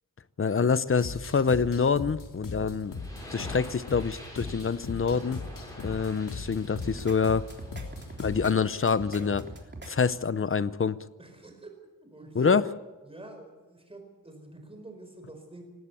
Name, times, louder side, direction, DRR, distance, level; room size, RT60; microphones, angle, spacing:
voice 1, 0.4-2.9 3.3-5.4 5.8-7.4 8.2-9.4 9.9-11.0 12.3-12.6, left 5 dB, 40° left, 16 dB, 0.7 m, -26 dB
sound 1, 1.0-8.7, left 3 dB, 80° left, 2.4 m, -40 dB
sound 2, 2.9-9.5, equal, 10° left, 7.5 m, -47 dB
sound 3, 6.7-7.2 7.5-8.5 8.9-9.9, right 2 dB, 35° right, 3.4 m, -42 dB
voice 2, 11.2-12.6 13.0-15.6, right 2 dB, 15° right, 5 dB, 4.7 m, -45 dB
19.0 x 16.5 x 8.4 m, 1.2 s
wide cardioid pair, 140°, 32 cm